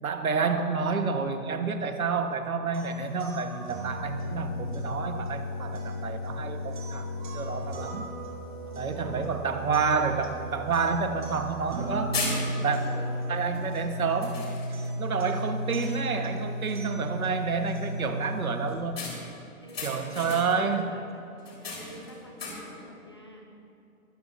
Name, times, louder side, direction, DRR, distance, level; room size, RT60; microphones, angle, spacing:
voice 1, 0.0-7.1 7.3-8.1 8.8-12.2 12.6-12.8 13.3-14.5 15.0-19.1 19.8-20.9, right 5 dB, 70° right, 6 dB, 1.4 m, -29 dB
sound 1, 2.7-18.7, equal, 35° right, 2.4 m, -35 dB
voice 2, 8.6-9.4 12.6-13.6 19.6-23.5, right 1 dB, 20° left, -1 dB, 0.6 m, -46 dB
sound 2, 10.8-10.9 11.6-11.8 12.1-12.8 13.5-13.8 14.2-15.0 15.4-15.5 15.8-16.2 19.0-20.7 21.4-22.8, left 3 dB, 40° left, 3.3 m, -37 dB
21.5 x 13.0 x 2.7 m, 2.8 s
hypercardioid pair, 170°, 43 cm